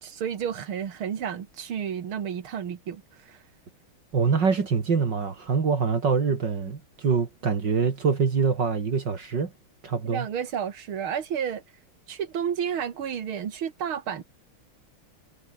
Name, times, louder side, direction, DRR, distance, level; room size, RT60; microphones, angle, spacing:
voice 1, 0.0-3.4 10.1-11.6 12.1-14.2, right 8 dB, 75° right, 2.6 m, -31 dB
voice 2, 4.1-9.5 9.8-10.3, right 5 dB, 55° right, 3.0 m, -24 dB
omnidirectional pair, 2.3 m